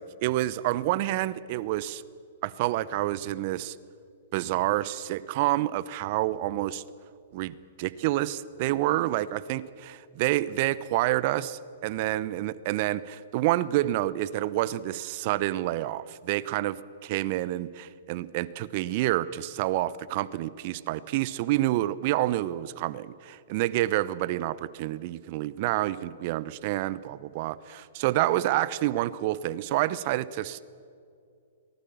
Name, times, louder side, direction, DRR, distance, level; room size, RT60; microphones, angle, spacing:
voice 1, 0.0-2.0 2.4-3.7 4.3-6.8 7.3-30.6, right 15 dB, 45° right, 18 dB, 0.9 m, -28 dB
23.5 x 19.5 x 7.2 m, 2.4 s
hypercardioid pair, 120°, 0 cm